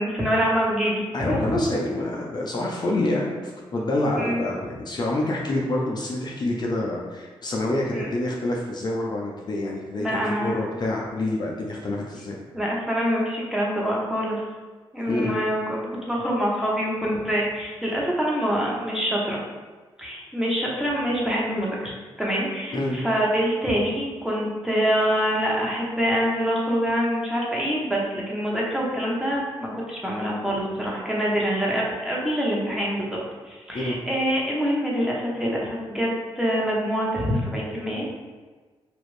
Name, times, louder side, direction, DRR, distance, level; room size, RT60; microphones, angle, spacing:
voice 1, 0.0-1.4 4.2-4.4 7.9-8.1 10.0-10.6 12.5-14.4 14.9-19.4 20.0-21.9 22.2-33.2 33.5-36.1 36.4-38.1, equal, 5° right, -4 dB, 1.0 m, -25 dB
voice 2, 1.1-12.4 15.1-15.4 22.7-23.0 33.7-34.0, left 1 dB, 45° left, -2 dB, 0.5 m, -27 dB
3.0 x 2.5 x 3.2 m, 1.4 s
cardioid pair, 60°, 10 cm